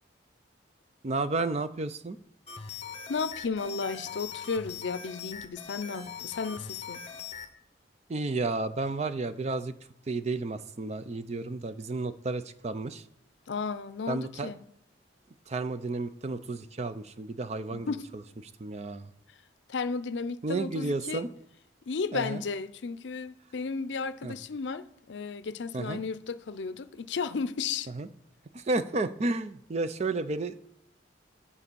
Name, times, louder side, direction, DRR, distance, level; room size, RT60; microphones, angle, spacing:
voice 1, 1.0-2.2 8.1-9.7 10.1-13.0 14.1-14.5 15.5-17.9 18.6-19.1 20.4-21.3 22.1-22.4 24.2-24.3 25.7-26.0 28.0-28.1 28.5-30.6, right 3 dB, 35° right, 0.5 m, -32 dB
sound 1, 2.5-7.5, left 7 dB, 35° left, 0.8 m, -41 dB
voice 2, 3.1-7.0 13.5-14.6 17.7-18.1 19.7-21.2 21.9-27.9, left 5 dB, 70° left, 0.5 m, -34 dB
8.5 x 4.1 x 6.8 m
head